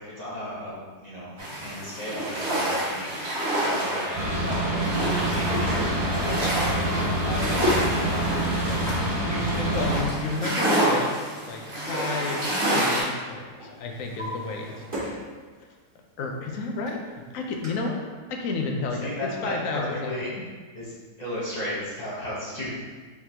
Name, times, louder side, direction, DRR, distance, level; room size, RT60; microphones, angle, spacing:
voice 1, 0.0-9.0 9.5-10.3 19.0-20.3 20.7-20.9 21.2-22.7, left 1 dB, 30° left, -9 dB, 1.0 m, -35 dB
sound 1, 1.4-13.0, right 1 dB, 40° right, 1.6 m, -28 dB
sound 2, 4.1-10.0, right 1 dB, 70° right, 1.5 m, -26 dB
Drawer open or close, 5.1-6.2 7.0-7.9 9.0-9.1 10.9-12.4 12.7-13.1 13.6-15.3 15.7-15.8 16.5-16.6 16.9-17.0 17.6-17.7, equal, 20° right, 1.3 m, -33 dB
voice 2, 9.2-11.1 11.5-12.4 12.7-14.8 16.2-18.0 18.3-20.1 20.4-20.5, left 3 dB, 65° left, 2 dB, 0.9 m, -31 dB
4.6 x 3.7 x 2.8 m, 1.4 s
omnidirectional pair, 1.8 m